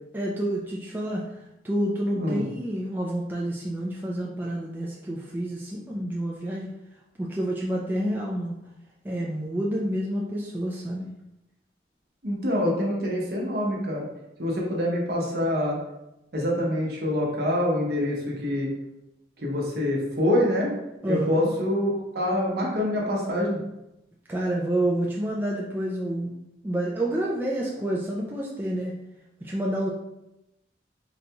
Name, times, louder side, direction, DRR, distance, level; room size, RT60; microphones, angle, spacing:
voice 1, 0.1-1.3 1.6-6.7 7.2-8.6 9.0-11.1 21.0-21.5 24.3-26.3 26.6-29.0 29.4-29.9, right 1 dB, 10° right, -4 dB, 0.3 m, -28 dB
voice 2, 12.2-14.1 14.4-15.8 16.3-18.7 19.4-20.7 21.1-23.6, left 1 dB, 60° right, -3 dB, 0.8 m, -25 dB
3.9 x 2.2 x 2.8 m, 0.89 s
head